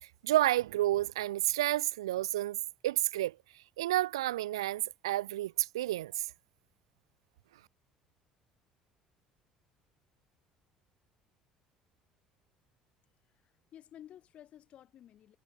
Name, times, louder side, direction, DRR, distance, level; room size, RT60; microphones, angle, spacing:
voice 1, 0.2-2.6 2.8-3.4 3.8-6.3, right 15 dB, 70° right, 1.0 m, -30 dB
voice 2, 13.3-15.4, left 11 dB, 45° left, 7.6 m, -54 dB
figure-of-eight pair, 55°, 3 cm